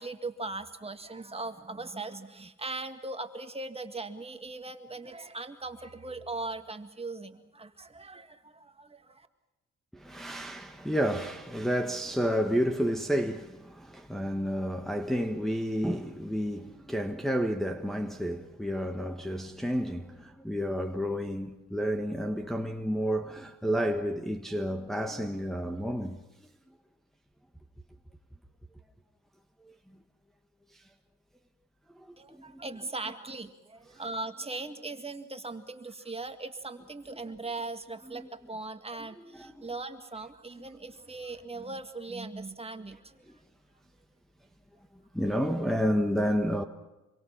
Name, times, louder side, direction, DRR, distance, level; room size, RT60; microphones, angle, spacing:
voice 1, 0.0-9.3 32.2-43.2, right 3 dB, 20° right, 1.9 m, -39 dB
voice 2, 9.9-26.2 29.6-29.7 30.7-30.8 31.9-32.7 38.1-38.3 39.0-39.7 43.3-43.4 45.1-46.6, equal, ahead, 1.4 m, -31 dB
27.0 x 23.0 x 5.9 m
cardioid pair, 90°, 30 cm